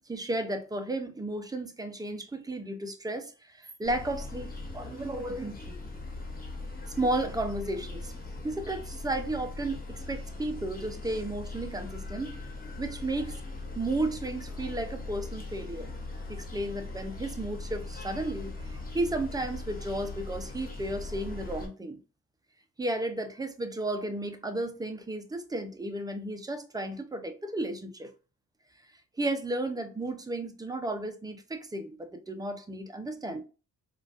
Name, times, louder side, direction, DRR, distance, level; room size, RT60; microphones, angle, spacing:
voice 1, 0.1-3.3 3.6-5.8 7.0-8.1 8.4-12.4 12.8-13.4 13.8-15.9 16.3-22.0 22.8-28.1 29.2-33.4, right 2 dB, 15° right, 0.5 m, -33 dB
sound 1, 3.8-21.7, left 2 dB, 30° left, 1.0 m, -40 dB
3.8 x 2.4 x 2.4 m
cardioid pair, 90°, 30 cm